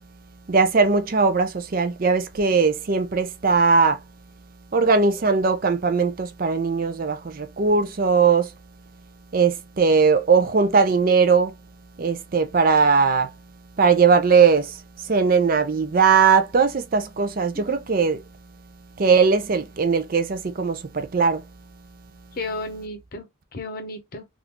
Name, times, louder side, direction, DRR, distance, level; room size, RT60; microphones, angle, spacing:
voice 1, 0.5-4.0 4.7-8.5 9.3-11.5 12.0-13.3 13.8-18.2 19.0-21.4, right 5 dB, 40° right, 0.4 m, -19 dB
voice 2, 22.3-24.3, left 2 dB, 45° left, 0.7 m, -34 dB
3.6 x 2.5 x 2.9 m
head